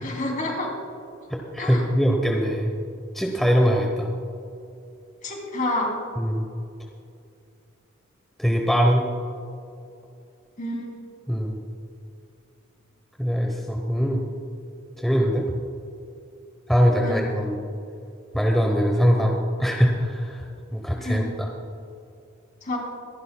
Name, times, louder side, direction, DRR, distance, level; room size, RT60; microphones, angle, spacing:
voice 1, 0.0-0.7 1.6-1.9 5.2-6.0 10.6-10.9 17.0-17.2 21.0-21.3 22.6-22.8, left 1 dB, 40° left, -1 dB, 2.9 m, -28 dB
voice 2, 1.3-2.7 3.1-4.1 6.2-6.4 8.4-9.0 11.3-11.6 13.2-14.2 15.0-15.4 16.7-17.6 18.3-20.4 20.7-21.2, equal, ahead, 0 dB, 0.8 m, -22 dB
25.5 x 11.5 x 2.2 m, 2.5 s
head